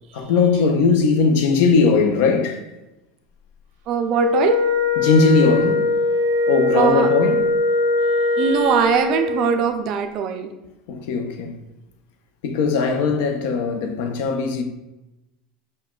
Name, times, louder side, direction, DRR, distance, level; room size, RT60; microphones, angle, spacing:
voice 1, 0.1-2.6 5.0-5.9 6.5-7.4 10.9-11.5 12.4-14.6, left 4 dB, 75° left, 0.5 m, -19 dB
voice 2, 3.9-4.5 6.7-7.1 8.4-10.5, right 7 dB, 55° right, 0.4 m, -21 dB
Wind instrument woodwind instrument, 4.1-9.7, left 3 dB, 85° right, 0.7 m, -21 dB
5.3 x 2.1 x 2.3 m
supercardioid pair, 105°, 0 cm